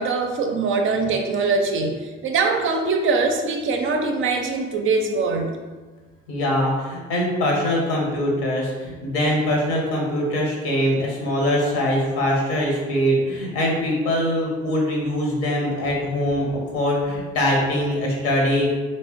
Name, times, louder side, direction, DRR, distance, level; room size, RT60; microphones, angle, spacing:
voice 1, 0.0-5.5, right 4 dB, 40° right, 3 dB, 0.5 m, -22 dB
voice 2, 6.3-18.7, left 1 dB, 65° left, -1 dB, 1.1 m, -22 dB
3.3 x 3.1 x 2.9 m, 1.3 s
figure-of-eight pair, 55°, 32 cm